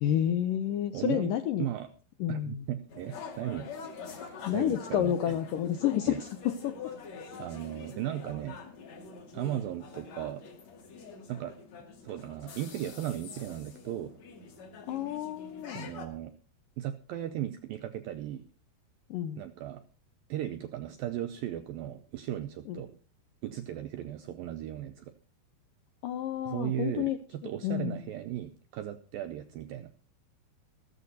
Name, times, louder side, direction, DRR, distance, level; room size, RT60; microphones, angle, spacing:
voice 1, 0.0-1.7 2.2-2.6 4.5-6.8 14.9-15.9 19.1-19.4 22.7-22.8 26.0-27.2 27.6-28.0, left 11 dB, 80° left, 9 dB, 2.0 m, -30 dB
voice 2, 0.9-1.3 1.6-1.9 2.3-3.7 4.1-5.4 6.1-6.2 7.4-8.6 9.3-10.4 11.3-11.6 12.0-14.1 15.7-16.4 16.8-18.5 19.4-19.8 20.3-23.0 23.4-25.1 26.4-29.9, right 12 dB, 80° right, 10 dB, 2.0 m, -36 dB
sound 1, 2.9-16.1, left 5 dB, 45° left, 2.9 m, -46 dB
14.5 x 13.5 x 4.1 m, 0.38 s
omnidirectional pair, 4.9 m